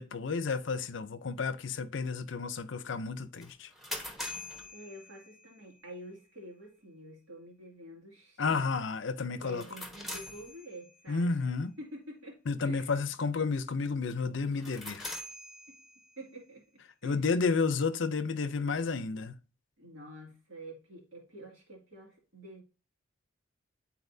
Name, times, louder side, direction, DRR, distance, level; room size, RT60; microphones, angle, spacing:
voice 1, 0.0-3.7 8.4-9.6 11.1-11.7 12.5-15.1 17.0-19.4, left 4 dB, 65° left, 0.5 m, -31 dB
sound 1, 3.4-5.7 9.4-11.1 14.5-16.3, left 1 dB, ahead, 1.0 m, -43 dB
voice 2, 4.7-8.7 9.4-11.5 11.8-12.4 12.6-12.9 15.7-15.8 16.2-17.2 19.8-22.6, right 1 dB, 75° right, 2.3 m, -48 dB
10.0 x 4.2 x 2.7 m
head